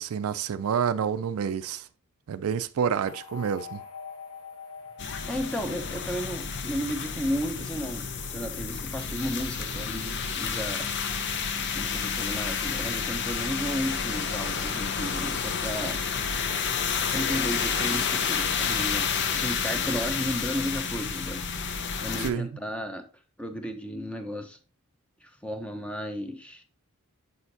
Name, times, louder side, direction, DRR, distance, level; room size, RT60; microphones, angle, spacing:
voice 1, 0.0-1.9 2.3-3.8 22.2-22.5, right 7 dB, 65° right, 0.3 m, -28 dB
sound 1, 3.1-7.3, left 6 dB, 90° left, 1.9 m, -45 dB
sound 2, 5.0-22.3, left 6 dB, 50° left, 0.6 m, -30 dB
voice 2, 5.3-10.9 11.7-16.0 17.1-21.4 22.0-23.0 23.4-24.6 25.2-26.6, equal, 5° left, 0.7 m, -34 dB
6.8 x 6.3 x 2.6 m
head